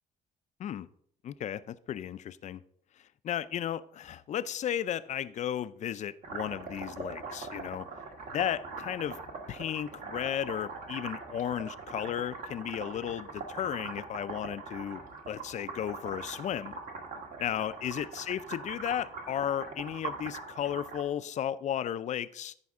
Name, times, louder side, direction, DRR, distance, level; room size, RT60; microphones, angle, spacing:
voice 1, 1.2-2.6 3.0-7.9 8.3-9.2 9.5-15.0 15.3-16.8 17.4-22.5, left 10 dB, 45° left, 0.4 m, -34 dB
sound 1, 6.2-21.0, right 4 dB, 55° right, 1.6 m, -42 dB
14.0 x 5.2 x 3.6 m
cardioid pair, 110°, 17 cm